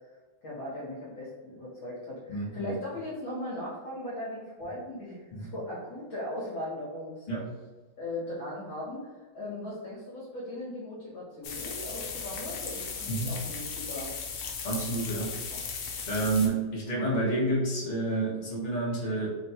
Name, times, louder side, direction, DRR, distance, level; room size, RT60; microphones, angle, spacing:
voice 1, 0.4-7.3 8.0-9.1 9.3-14.1 15.5-15.6, left 1 dB, 70° left, -7 dB, 1.7 m, -38 dB
voice 2, 2.3-2.7 5.3-5.5 7.3-7.4 13.1-13.4 14.6-15.4 16.1-19.3, right 2 dB, 35° left, -5 dB, 0.6 m, -29 dB
sound 1, 11.4-16.5, left 5 dB, 90° left, 1.5 m, -37 dB
4.0 x 2.2 x 4.2 m, 1.3 s
omnidirectional pair, 2.3 m